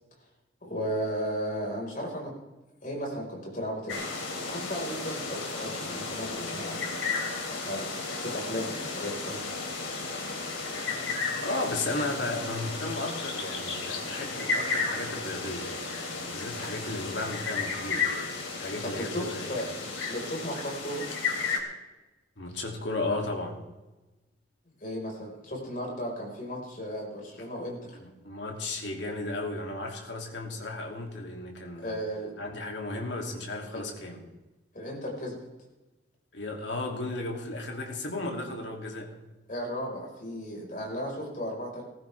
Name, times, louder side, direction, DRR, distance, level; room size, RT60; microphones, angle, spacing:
voice 1, 0.6-2.3 2.8-4.0 4.4-6.8 7.5-7.9 8.2-9.4 18.8-21.0 24.8-27.9 31.7-32.3 33.7-33.8 34.7-35.4 39.5-41.8, equal, 45° left, -1 dB, 4.9 m, -35 dB
sound 1, 3.9-21.6, left 4 dB, 85° left, 3.2 m, -33 dB
voice 2, 11.4-18.3 18.6-19.5 22.4-23.6 28.0-32.0 32.4-34.2 36.3-39.1, left 2 dB, 65° left, 1 dB, 2.8 m, -34 dB
19.0 x 15.0 x 3.5 m, 1.1 s
head